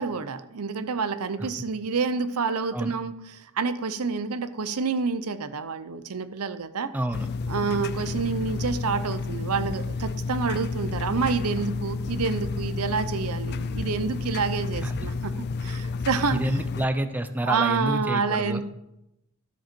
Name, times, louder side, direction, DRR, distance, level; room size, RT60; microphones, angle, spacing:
voice 1, 0.0-6.9 7.5-16.5 17.4-18.6, right 5 dB, 80° right, 13 dB, 0.7 m, -28 dB
voice 2, 6.9-7.3 14.8-15.1 16.3-18.6, right 1 dB, 10° right, 10 dB, 0.6 m, -28 dB
sound 1, 7.1-16.8, left 4 dB, 50° left, 0.4 m, -31 dB
13.0 x 7.6 x 4.5 m, 0.85 s
head